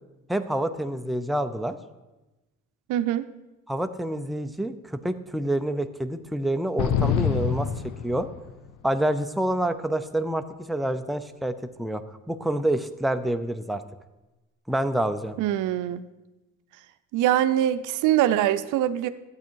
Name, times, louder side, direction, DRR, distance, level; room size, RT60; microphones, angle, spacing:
voice 1, 0.3-1.8 3.7-7.7 8.0-8.3 8.8-12.0 12.3-13.8 14.7-15.4, right 1 dB, ahead, 8 dB, 0.6 m, -27 dB
voice 2, 2.9-3.3 15.4-16.0 17.1-19.1, right 12 dB, 85° right, 12 dB, 0.6 m, -23 dB
sound 1, 6.8-8.7, left 7 dB, 85° left, 0.9 m, -26 dB
12.0 x 8.4 x 4.6 m, 1.1 s
cardioid pair, 90°, 30 cm